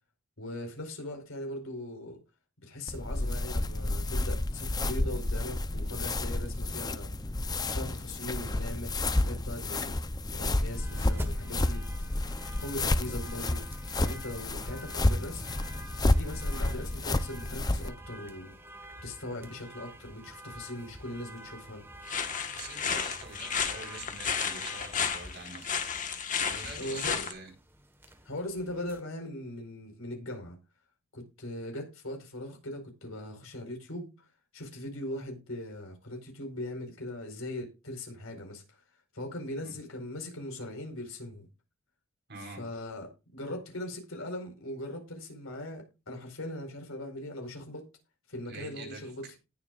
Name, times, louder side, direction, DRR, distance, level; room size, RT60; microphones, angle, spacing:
voice 1, 0.4-2.2 2.6-7.1 7.7-9.9 10.3-11.8 12.4-13.6 14.0-15.4 16.1-18.5 19.0-21.8 26.8-27.3 28.2-30.6 31.1-34.1 34.5-38.8 39.1-41.5 42.4-47.9 48.3-49.4, left 1 dB, 85° left, 4.6 m, -40 dB
sound 1, 2.9-17.9, left 2 dB, 20° left, 0.6 m, -30 dB
sound 2, 10.6-29.0, right 1 dB, 10° right, 1.4 m, -49 dB
sound 3, 22.1-27.3, left 6 dB, 40° left, 1.4 m, -33 dB
voice 2, 22.5-25.9 26.5-27.5 39.6-39.7 42.3-42.6 48.5-49.3, right 3 dB, 55° right, 4.3 m, -45 dB
19.0 x 7.0 x 2.5 m
head